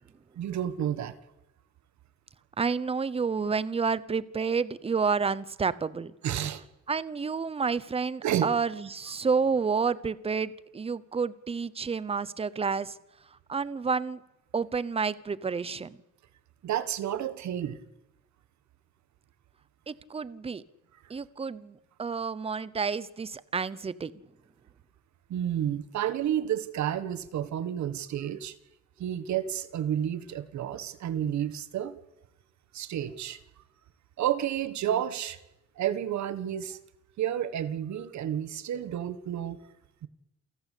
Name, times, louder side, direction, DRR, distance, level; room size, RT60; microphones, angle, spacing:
voice 1, 0.4-1.2 6.2-6.6 8.2-8.5 16.6-17.8 25.3-28.5 29.0-32.0 32.7-33.4 34.2-35.4 35.8-36.8 37.2-39.6 40.0-40.1, right 10 dB, 70° right, 13 dB, 1.5 m, -30 dB
voice 2, 2.6-6.1 6.9-13.0 13.5-14.2 14.5-16.0 19.9-20.6 21.1-24.1, right 5 dB, 20° right, 17 dB, 0.8 m, -30 dB
28.5 x 17.5 x 8.4 m, 0.94 s
wide cardioid pair, 175°, 29 cm